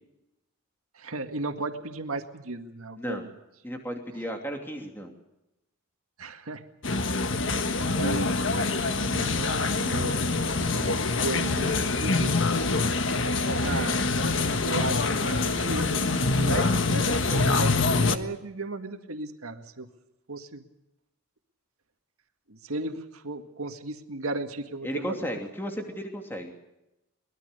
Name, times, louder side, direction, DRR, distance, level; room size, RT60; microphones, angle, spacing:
voice 1, 1.0-3.3 6.2-6.6 7.9-8.3 8.7-12.3 13.6-14.1 14.6-16.1 16.3-19.9 20.3-20.6 22.5-25.2, right 2 dB, 85° right, 6 dB, 1.9 m, -35 dB
voice 2, 3.0-3.3 3.6-5.1 24.8-26.5, equal, 10° left, 3 dB, 2.8 m, -34 dB
sound 1, 6.8-18.2, left 3 dB, 60° left, 1.5 m, -25 dB
24.0 x 21.0 x 6.8 m, 0.91 s
head